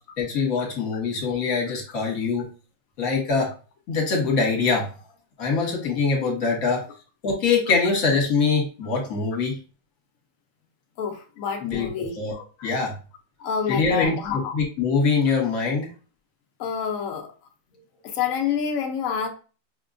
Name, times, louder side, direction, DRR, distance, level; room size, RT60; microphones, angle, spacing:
voice 1, 0.2-2.5 3.0-3.5 3.9-4.9 5.4-6.8 7.2-9.6 11.6-11.9 12.2-12.3 12.6-12.9 13.7-15.9, left 4 dB, 55° left, 1.4 m, -23 dB
voice 2, 11.0-12.2 12.6-12.7 13.4-14.6 16.6-17.3 18.0-19.3, left 7 dB, 80° left, 0.7 m, -28 dB
5.1 x 2.2 x 2.5 m
omnidirectional pair, 2.1 m